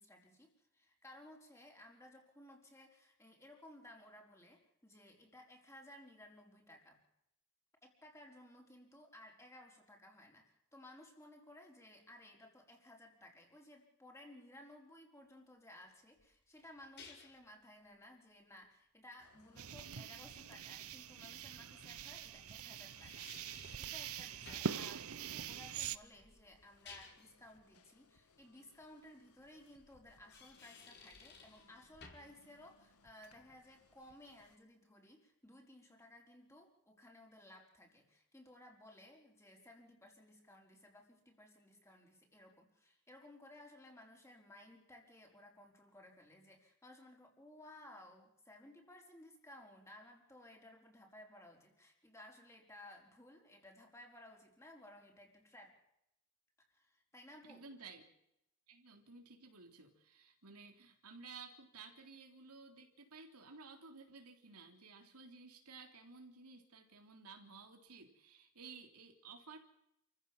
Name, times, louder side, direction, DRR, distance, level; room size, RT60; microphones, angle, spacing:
voice 1, 0.0-7.0 7.8-55.8 56.7-57.6, left 1 dB, 15° left, 1 dB, 4.9 m, -58 dB
sound 1, 16.2-17.5 20.7-20.8 22.7-23.9 24.5-24.8 26.6-27.4 30.1-31.7 32.0-32.4, left 5 dB, 50° left, 4.9 m, -56 dB
sound 2, 19.2-34.6, left 3 dB, 85° left, 2.1 m, -69 dB
sound 3, 19.6-26.0, right 7 dB, 70° right, 0.9 m, -44 dB
voice 2, 57.5-58.0 58.7-69.6, right 4 dB, 85° right, 4 dB, 3.5 m, -55 dB
28.5 x 15.0 x 7.4 m, 0.82 s
head